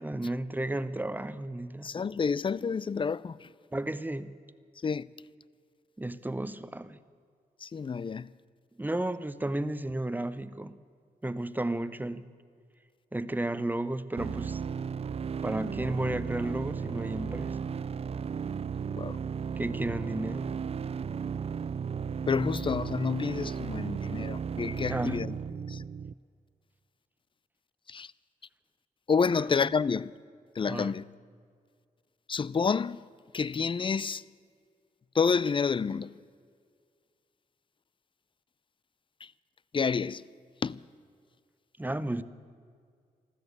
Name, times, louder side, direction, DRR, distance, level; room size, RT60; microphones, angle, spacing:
voice 1, 0.0-1.9 3.7-4.3 6.0-7.0 8.8-10.8 11.2-12.3 13.1-14.6 15.4-17.7 19.6-20.5 24.9-25.2 30.7-30.9 41.8-42.2, right 1 dB, 10° right, 0.7 m, -33 dB
voice 2, 1.8-3.5 4.8-5.1 7.6-8.3 18.9-19.2 22.3-25.4 25.7-25.8 27.9-28.1 29.1-30.1 30.6-31.0 32.3-33.0 33.3-34.2 35.1-36.1 39.2-39.3 39.7-40.2 40.6-40.8, left 5 dB, 35° left, 0.4 m, -29 dB
sound 1, 14.2-26.1, right 6 dB, 40° right, 0.4 m, -35 dB
13.5 x 13.0 x 8.3 m
cardioid pair, 65°, 16 cm